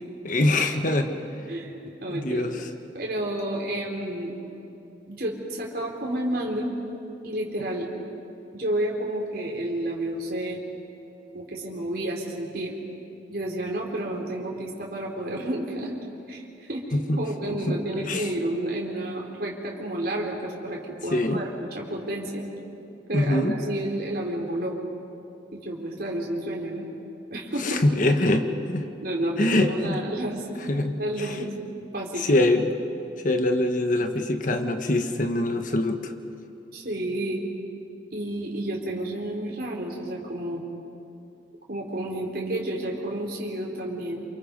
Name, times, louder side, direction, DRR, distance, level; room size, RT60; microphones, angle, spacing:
voice 1, 0.2-1.1 2.1-2.6 16.9-17.3 17.7-18.3 21.1-21.4 23.1-23.5 27.6-28.9 29.4-30.0 30.7-31.3 32.2-32.7 33.2-36.1, left 1 dB, 45° left, 6 dB, 1.4 m, -24 dB
voice 2, 2.0-2.4 2.9-4.4 5.1-6.7 7.2-7.9 8.5-10.6 11.3-12.7 13.3-15.9 16.3-16.8 17.2-22.4 23.1-24.8 25.5-26.8 27.3-27.8 29.0-30.5 31.0-32.4 36.7-37.4 38.1-40.6 41.7-44.3, right 1 dB, 55° right, -2 dB, 3.9 m, -30 dB
28.5 x 27.5 x 5.4 m, 2.8 s
head